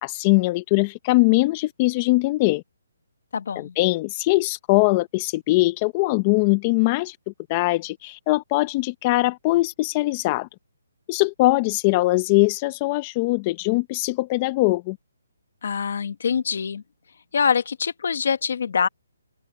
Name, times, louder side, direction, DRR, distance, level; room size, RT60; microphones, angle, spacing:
voice 1, 0.0-2.6 3.6-7.2 7.5-10.5 11.1-15.0, left 21 dB, 20° left, 0.7 m, -21 dB
voice 2, 3.3-3.7 15.6-16.8 17.3-18.9, left 6 dB, 55° left, 1.3 m, -24 dB
open air
hypercardioid pair, 165°, 0 cm